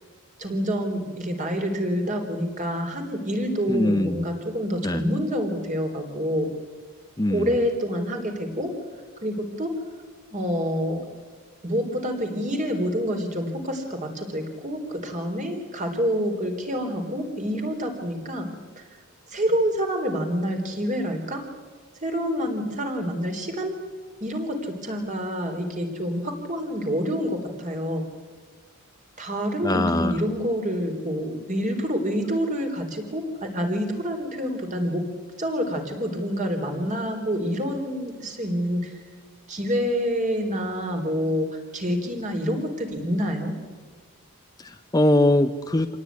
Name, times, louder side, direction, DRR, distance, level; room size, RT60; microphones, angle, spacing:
voice 1, 0.4-6.5 7.3-8.7 9.2-9.7 10.3-11.0 11.6-18.5 18.8-18.9 19.3-21.4 22.0-23.8 24.2-28.1 29.2-35.1 35.4-38.9 39.5-43.5, equal, 35° right, 4 dB, 3.8 m, -27 dB
voice 2, 3.7-4.2 4.8-5.0 7.2-7.5 29.6-30.2 44.6-45.9, left 1 dB, 15° left, 9 dB, 0.7 m, -22 dB
26.5 x 18.5 x 9.6 m, 1.5 s
head